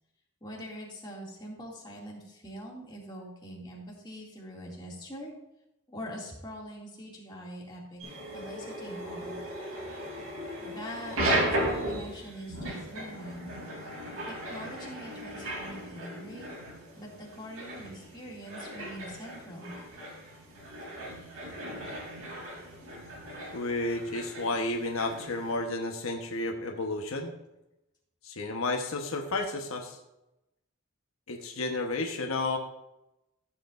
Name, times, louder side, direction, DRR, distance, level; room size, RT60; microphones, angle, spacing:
voice 1, 0.4-5.3 5.9-8.0 8.3-9.4 10.6-13.5 14.3-16.6 16.9-19.7, equal, 20° left, -4 dB, 2.5 m, -43 dB
sound 1, 8.0-25.5, right 1 dB, 85° right, 3.2 m, -36 dB
voice 2, 23.5-27.3 28.2-30.0 31.3-32.6, left 2 dB, 90° left, 3 dB, 1.2 m, -32 dB
15.0 x 7.6 x 2.6 m, 0.91 s
head